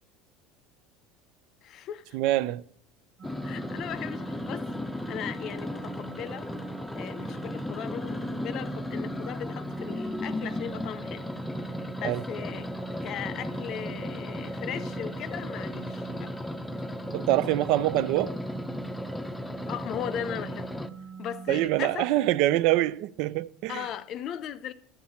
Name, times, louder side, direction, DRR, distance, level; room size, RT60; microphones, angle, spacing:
voice 1, 1.6-2.2 3.4-4.7 5.1-6.5 6.9-11.3 11.7-12.7 13.0-16.3 19.7-20.8 21.2-22.1 23.7-24.7, left 10 dB, 50° left, 0.6 m, -38 dB
voice 2, 2.1-2.6 12.0-12.2 17.1-18.4 21.5-23.9, right 15 dB, 65° right, 0.4 m, -25 dB
sound 1, 3.2-20.9, left 1 dB, 10° left, 0.6 m, -35 dB
sound 2, 3.2-21.7, right 6 dB, 30° right, 1.2 m, -43 dB
12.0 x 7.2 x 4.3 m
supercardioid pair, 125°, 0 cm